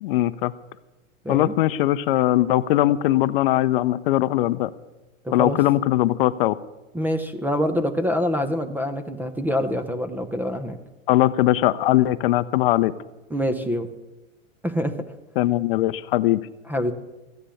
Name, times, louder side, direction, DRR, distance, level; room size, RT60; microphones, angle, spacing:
voice 1, 0.0-0.5 1.3-4.7 5.3-6.6 11.1-12.9 15.4-16.4, left 15 dB, 45° left, 14 dB, 0.6 m, -20 dB
voice 2, 5.2-5.6 6.9-10.8 13.3-13.9 14.6-14.9 16.7-16.9, equal, 5° right, 8 dB, 0.5 m, -25 dB
14.5 x 9.9 x 7.0 m, 1.0 s
hypercardioid pair, 125°, 39 cm